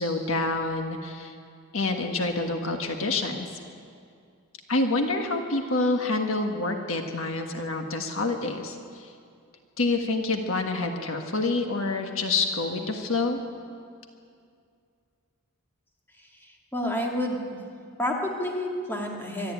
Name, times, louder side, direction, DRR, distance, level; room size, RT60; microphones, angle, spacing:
voice 1, 0.0-1.3 1.7-3.5 4.7-9.1 9.8-13.4, left 3 dB, 60° left, 4 dB, 1.6 m, -27 dB
voice 2, 16.4-17.4 18.0-19.5, left 1 dB, 10° left, -1 dB, 2.4 m, -29 dB
24.0 x 12.5 x 9.1 m, 2.3 s
head